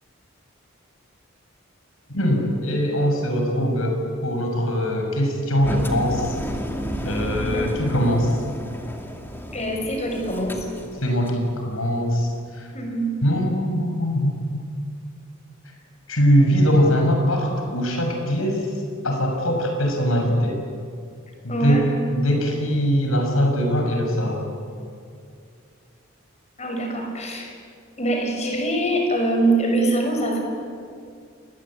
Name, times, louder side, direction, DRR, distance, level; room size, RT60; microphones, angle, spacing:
voice 1, 2.1-6.4 7.0-8.4 11.0-12.7 13.2-14.7 16.1-18.7 19.0-20.6 21.4-24.5, equal, 85° left, 2 dB, 6.6 m, -22 dB
Engine, 5.6-11.4, equal, 10° left, 2.5 m, -31 dB
voice 2, 7.4-7.8 9.5-10.7 12.7-13.1 21.5-21.9 26.6-27.5 28.0-30.4, right 2 dB, 35° left, 2 dB, 5.8 m, -24 dB
29.0 x 21.5 x 8.9 m, 2.3 s
head